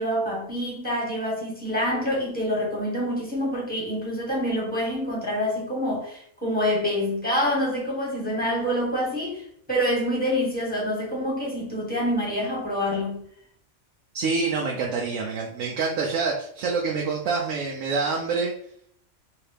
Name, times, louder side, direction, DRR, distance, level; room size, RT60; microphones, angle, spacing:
voice 1, 0.0-13.2, equal, 5° left, 1.3 m, -26 dB
voice 2, 14.1-18.5, right 4 dB, 90° right, 1.0 m, -26 dB
3.2 x 2.9 x 3.3 m
omnidirectional pair, 1.3 m